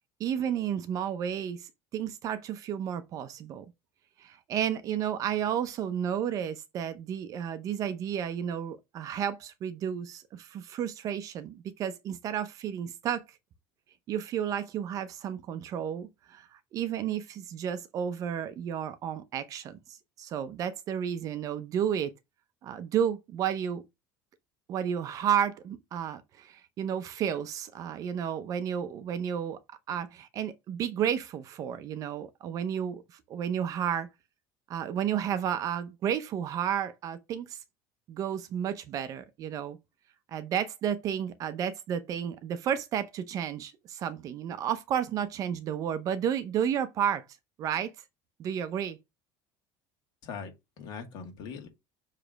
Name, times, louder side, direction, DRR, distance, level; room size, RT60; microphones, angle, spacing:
voice 1, 0.2-3.7 4.2-13.2 14.1-19.8 20.2-22.1 22.6-23.8 24.7-29.6 29.9-34.1 34.7-37.6 38.1-39.8 40.3-47.2 47.6-47.9 48.4-49.0, right 9 dB, 40° right, 0.6 m, -32 dB
voice 2, 50.2-51.7, left 5 dB, 50° left, 2.1 m, -41 dB
6.8 x 3.3 x 5.1 m
cardioid pair, 165°, 9 cm